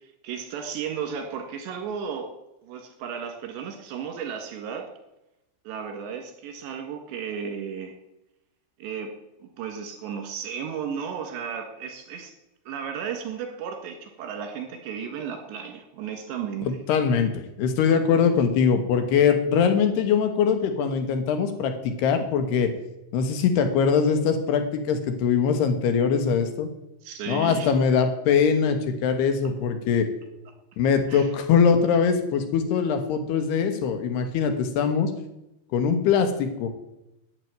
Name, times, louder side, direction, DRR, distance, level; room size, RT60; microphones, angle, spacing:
voice 1, 0.2-2.3 2.6-4.9 5.7-7.9 8.8-9.1 9.4-12.3 12.7-16.8 27.0-27.7 31.1-31.3, right 7 dB, 85° right, 5 dB, 4.1 m, -34 dB
voice 2, 16.6-22.7 23.1-26.7 27.3-30.1 30.8-35.1 35.7-36.7, left 6 dB, 75° left, 7 dB, 3.3 m, -22 dB
11.0 x 8.8 x 9.2 m, 0.90 s
omnidirectional pair, 5.0 m